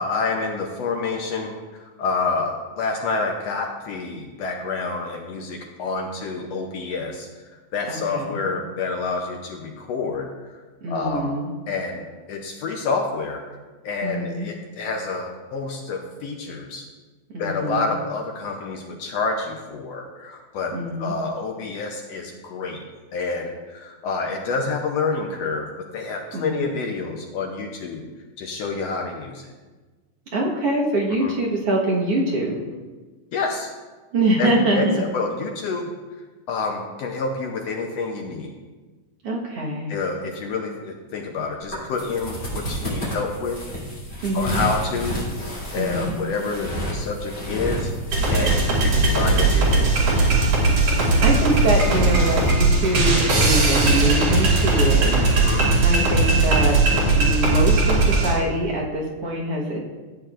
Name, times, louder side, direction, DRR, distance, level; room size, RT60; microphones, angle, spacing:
voice 1, 0.0-1.5 1.8-7.3 7.7-10.3 10.9-11.4 11.7-13.4 13.8-16.8 17.4-22.8 23.1-28.1 28.4-29.4 31.2-31.3 33.3-33.7 34.4-35.9 36.5-38.5 39.9-43.6 44.3-45.2 45.7-47.9 48.3-50.2 55.3-55.6, left 4 dB, 70° left, 2 dB, 1.7 m, -28 dB
voice 2, 7.9-8.5 10.8-11.5 14.0-14.5 17.3-17.9 20.7-21.1 26.3-26.7 30.3-32.6 34.1-35.0 39.2-39.9 44.2-44.6 45.8-46.1 50.9-55.2 55.5-56.8 57.1-59.9, right 1 dB, 55° right, -3 dB, 2.2 m, -24 dB
sound 1, 41.6-52.5, equal, 20° left, 3.2 m, -31 dB
sound 2, 48.1-58.3, right 3 dB, 90° right, 3.9 m, -18 dB
14.0 x 8.7 x 2.5 m, 1.3 s
omnidirectional pair, 3.4 m